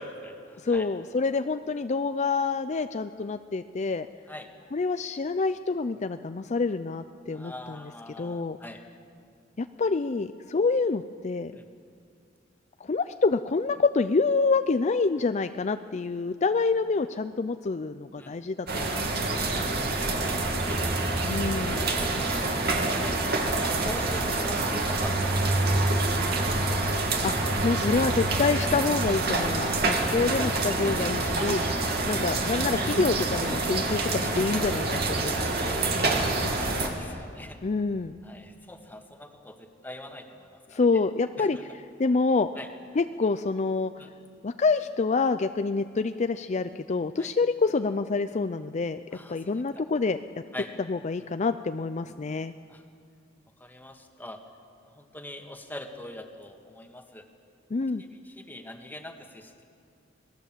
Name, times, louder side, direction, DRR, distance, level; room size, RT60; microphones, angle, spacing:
voice 1, 0.0-0.9 4.3-4.5 7.3-8.8 11.5-11.6 18.2-18.3 20.2-21.0 21.2-22.5 22.9-23.2 23.8-27.0 30.8-31.0 31.8-31.9 35.7-36.2 36.4-37.6 38.2-40.8 41.4-41.6 42.6-42.7 44.0-44.1 47.2-47.3 49.1-49.4 49.7-49.9 50.5-50.7 52.7-52.8 53.6-54.4 54.9-57.3 58.0-59.6, left 1 dB, 10° left, 4 dB, 1.7 m, -43 dB
voice 2, 0.6-4.1 4.7-7.9 8.2-8.6 9.6-11.5 12.8-19.1 19.5-19.7 21.3-21.8 27.2-35.5 37.6-38.2 40.7-42.5 42.9-43.9 44.4-49.0 49.3-50.2 50.9-52.5 57.7-58.0, left 4 dB, 35° left, 10 dB, 0.5 m, -27 dB
sound 1, 18.7-36.9, right 2 dB, 55° right, 2.6 m, -27 dB
26.0 x 19.5 x 7.4 m, 2.4 s
head